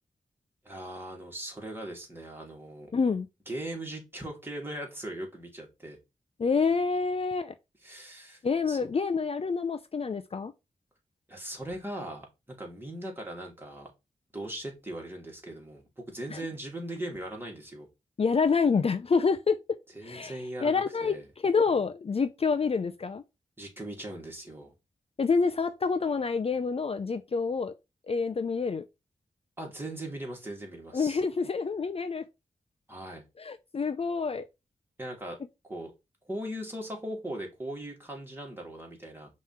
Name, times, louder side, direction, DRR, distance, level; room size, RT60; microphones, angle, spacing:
voice 1, 0.6-2.9 3.5-6.0 7.8-8.4 8.7-8.9 11.3-13.9 14.3-17.9 19.9-21.3 23.6-24.7 29.6-31.2 32.9-33.2 35.0-35.4 35.7-35.9 36.2-39.3, right 1 dB, 15° right, 2.8 m, -39 dB
voice 2, 2.9-3.3 6.4-7.5 8.4-10.5 16.3-16.4 18.2-19.6 20.0-23.2 25.2-27.7 28.1-28.8 30.9-32.2 33.4-34.4, left 5 dB, 45° left, 0.5 m, -27 dB
5.7 x 3.1 x 5.7 m
wide cardioid pair, 75°, 14 cm